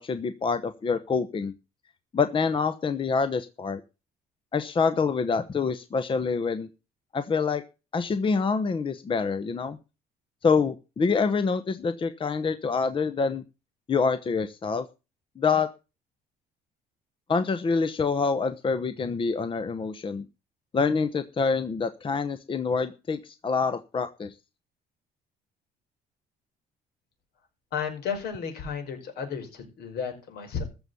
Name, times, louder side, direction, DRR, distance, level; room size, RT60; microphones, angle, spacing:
voice 1, 0.0-1.5 2.1-3.8 4.5-6.7 7.1-7.6 7.9-9.8 10.4-13.4 13.9-14.9 15.4-15.7 17.3-20.2 20.7-24.3, left 5 dB, 30° left, 11 dB, 1.0 m, -26 dB
voice 2, 27.7-30.6, left 6 dB, 70° left, 5 dB, 5.2 m, -33 dB
14.0 x 5.5 x 8.3 m, 0.30 s
cardioid pair, 110°, 17 cm